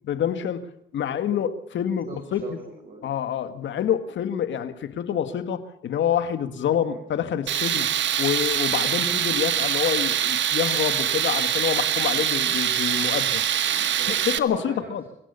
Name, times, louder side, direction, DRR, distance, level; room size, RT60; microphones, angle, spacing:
voice 1, 0.0-2.6 3.0-13.4 14.1-15.0, left 9 dB, 70° left, 10 dB, 2.0 m, -27 dB
voice 2, 2.1-3.0 6.7-7.0 13.6-14.2 14.4-15.1, right 3 dB, 45° right, 0 dB, 7.1 m, -41 dB
Tools, 7.5-14.4, right 10 dB, 65° right, 1.3 m, -24 dB
25.5 x 17.0 x 6.9 m, 0.76 s
cardioid pair, 90°, 20 cm